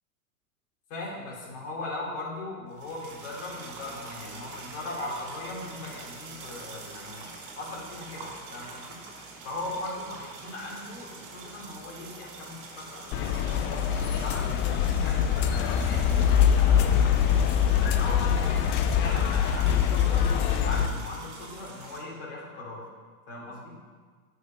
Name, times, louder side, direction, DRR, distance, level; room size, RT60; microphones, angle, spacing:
voice 1, 0.9-9.0 9.4-17.4 17.8-18.6 19.0-22.8 23.3-23.8, left 2 dB, 55° left, -3 dB, 3.0 m, -39 dB
sound 1, 2.7-22.0, right 3 dB, 45° right, 3.0 m, -45 dB
sound 2, 13.1-20.9, left 8 dB, 25° left, 0.5 m, -23 dB
8.6 x 6.4 x 5.8 m, 1.5 s
hypercardioid pair, 105°, 43 cm